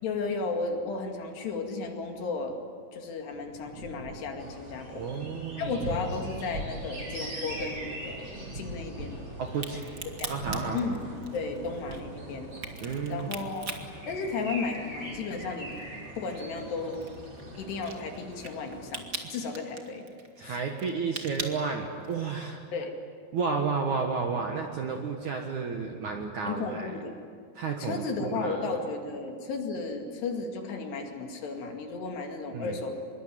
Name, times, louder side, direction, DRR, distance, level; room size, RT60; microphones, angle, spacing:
voice 1, 0.0-2.6 2.9-5.3 5.6-9.2 10.2-10.3 10.7-12.5 13.1-13.8 14.1-15.7 16.2-17.1 17.6-20.1 20.4-20.6 22.7-22.9 26.5-27.1 27.8-32.9, left 4 dB, 65° left, 3 dB, 4.3 m, -34 dB
Thunder, 3.3-18.6, right 1 dB, 40° right, 1.9 m, -43 dB
sound 1, 4.4-18.9, right 1 dB, 25° right, 6.1 m, -43 dB
voice 2, 4.9-5.9 9.4-9.8 10.3-10.8 12.8-13.4 20.4-22.6 23.3-26.9 27.5-28.7 32.5-32.8, right 5 dB, 60° right, 3 dB, 2.2 m, -32 dB
Crack, 9.5-15.0 15.3-22.3, right 3 dB, 80° right, 0.7 m, -41 dB
25.5 x 22.5 x 9.3 m, 2.1 s
omnidirectional pair, 5.2 m